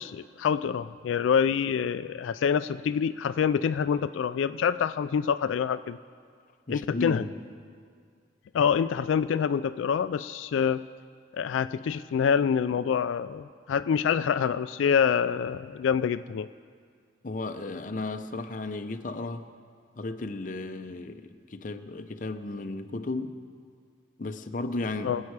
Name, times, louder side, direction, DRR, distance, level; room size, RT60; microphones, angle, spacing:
voice 1, 0.0-6.0 6.7-7.2 8.5-10.8 11.3-16.5 25.0-25.2, left 7 dB, 90° left, 12 dB, 0.3 m, -26 dB
voice 2, 6.7-7.3 17.2-19.5 20.0-23.3 24.2-25.2, left 2 dB, 45° left, 7 dB, 0.6 m, -34 dB
23.5 x 8.4 x 4.8 m, 2.1 s
head